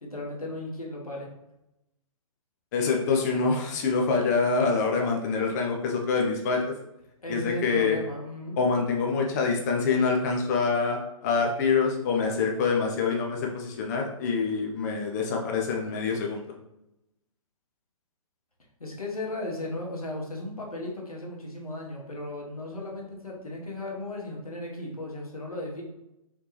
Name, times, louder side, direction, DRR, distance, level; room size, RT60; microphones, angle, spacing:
voice 1, 0.0-1.3 7.2-8.6 18.8-25.8, left 1 dB, 85° left, -2 dB, 1.1 m, -36 dB
voice 2, 2.7-6.7 7.3-8.0 8.6-16.4, left 4 dB, 30° left, 1 dB, 0.4 m, -26 dB
3.2 x 3.0 x 3.2 m, 0.89 s
figure-of-eight pair, 125°, 18 cm